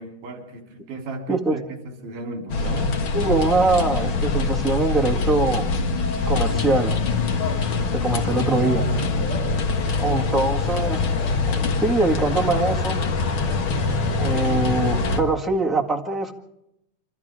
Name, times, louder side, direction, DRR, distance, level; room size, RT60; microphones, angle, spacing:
voice 1, 0.0-1.6 2.0-3.0 8.6-9.0 9.5-9.9 10.2-10.7, right 3 dB, 80° right, 2 dB, 5.1 m, -36 dB
voice 2, 1.3-1.6 3.1-5.7 6.2-6.9 7.9-8.8 10.0-11.0 11.5-11.6 11.8-13.0 14.2-16.3, right 3 dB, ahead, -2 dB, 0.8 m, -22 dB
sound 1, 2.5-15.2, left 4 dB, 50° left, 1.9 m, -24 dB
sound 2, 4.9-11.9, left 1 dB, 70° left, 6.7 m, -40 dB
27.5 x 25.5 x 3.7 m, 0.81 s
omnidirectional pair, 3.6 m